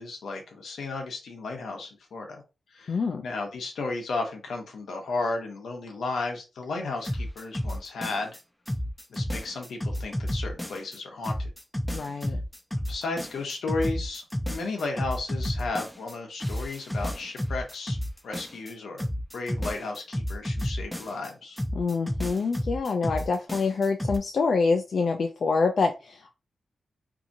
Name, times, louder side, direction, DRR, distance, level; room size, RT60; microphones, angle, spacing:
voice 1, 0.0-2.4 2.7-8.4 9.1-11.5 12.2-12.3 12.9-18.0 18.2-19.0 19.3-21.6, left 3 dB, 85° left, 3 dB, 0.8 m, -34 dB
voice 2, 2.9-3.3 11.9-12.4 21.7-26.3, left 4 dB, 70° left, 4 dB, 0.3 m, -26 dB
sound 1, 7.0-8.4 8.7-11.0 11.2-16.1 16.4-18.7 19.0-21.3 21.6-24.2, equal, 10° left, 0.5 m, -31 dB
2.7 x 2.6 x 2.6 m, 0.29 s
cardioid pair, 65°, 0 cm